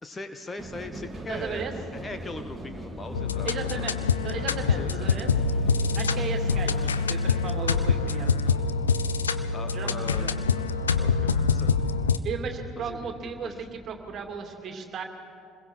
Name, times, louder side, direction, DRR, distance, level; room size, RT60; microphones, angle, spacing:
voice 1, 0.0-3.5 3.7-3.9 4.8-5.1 9.5-10.3 11.0-11.7 12.8-13.7, left 3 dB, 20° left, 8 dB, 1.2 m, -40 dB
sound 1, 0.6-14.4, right 1 dB, 5° right, 3.1 m, -43 dB
voice 2, 1.3-1.7 3.4-5.3 5.9-8.3 9.7-10.4 12.2-15.0, right 6 dB, 40° right, 4 dB, 2.5 m, -35 dB
sound 2, 3.1-12.2, left 5 dB, 80° left, 0.6 m, -25 dB
28.0 x 21.5 x 4.6 m, 2.5 s
figure-of-eight pair, 65°, 0 cm